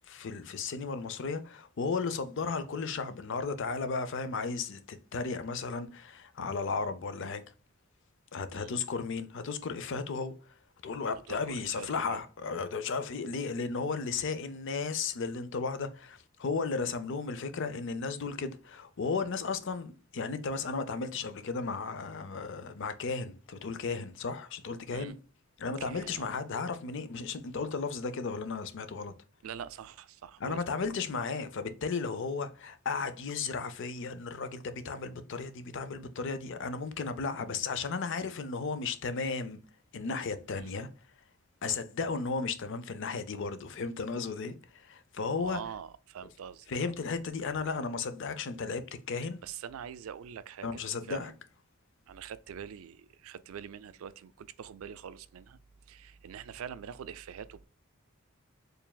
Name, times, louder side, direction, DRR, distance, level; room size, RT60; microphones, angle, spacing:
voice 1, 0.0-7.4 8.3-10.5 10.8-25.2 25.6-29.1 30.4-39.6 39.9-40.9 41.6-45.6 46.7-49.4 50.6-51.3, left 4 dB, 65° left, 0.5 m, -34 dB
voice 2, 11.3-12.2 24.9-25.2 25.8-26.3 29.4-30.6 40.6-40.7 45.4-46.9 49.4-51.2 52.1-55.6 55.9-57.7, right 8 dB, 85° right, 0.4 m, -44 dB
4.7 x 3.2 x 2.2 m
head